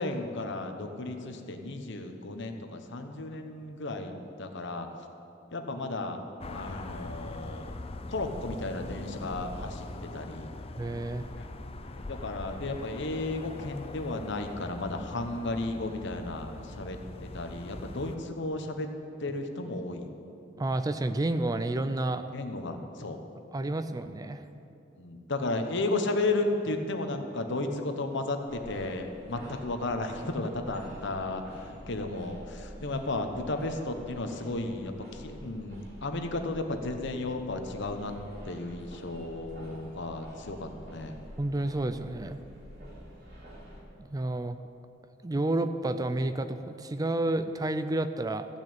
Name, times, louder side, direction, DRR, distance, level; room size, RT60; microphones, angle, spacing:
voice 1, 0.0-4.9 5.5-6.2 6.5-7.8 8.1-10.5 11.4-11.5 11.9-18.9 19.2-20.1 22.3-23.2 25.0-38.1 38.4-41.2, left 2 dB, 65° left, 6 dB, 1.1 m, -34 dB
sound 1, 6.4-18.2, left 2 dB, 30° left, 0.6 m, -42 dB
voice 2, 10.8-11.3 20.6-22.2 23.5-24.5 41.4-42.4 44.0-44.6 45.2-48.5, right 2 dB, 20° right, 10 dB, 0.4 m, -30 dB
sound 2, 28.5-43.8, equal, 55° right, 3.1 m, -48 dB
14.5 x 6.4 x 8.7 m, 2.7 s
head